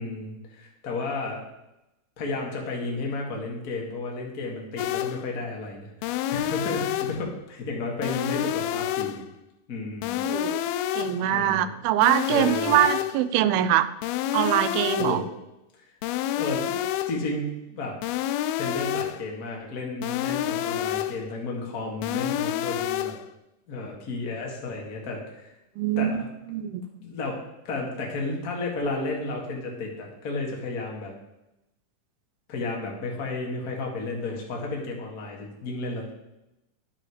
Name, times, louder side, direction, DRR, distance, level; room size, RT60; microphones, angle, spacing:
voice 1, 0.0-1.4 2.2-5.9 6.3-9.2 9.7-10.2 11.3-11.7 12.3-12.8 15.0-15.2 16.3-16.7 17.1-18.0 18.5-23.2 23.7-25.5 26.0-26.3 27.0-31.1 32.5-36.1, left 2 dB, 35° left, -1 dB, 1.6 m, -32 dB
sound 1, 4.8-5.3 6.0-7.3 8.0-9.3 10.0-11.3 12.0-13.3 14.0-15.3 16.0-17.3 18.0-19.3 20.0-21.3 22.0-23.3, left 12 dB, 85° left, 2.4 m, -28 dB
voice 2, 10.2-10.6 10.9-13.9 14.3-15.2 25.8-26.2 26.5-26.8, right 11 dB, 85° right, 11 dB, 2.4 m, -23 dB
10.5 x 7.6 x 4.9 m, 0.92 s
omnidirectional pair, 4.4 m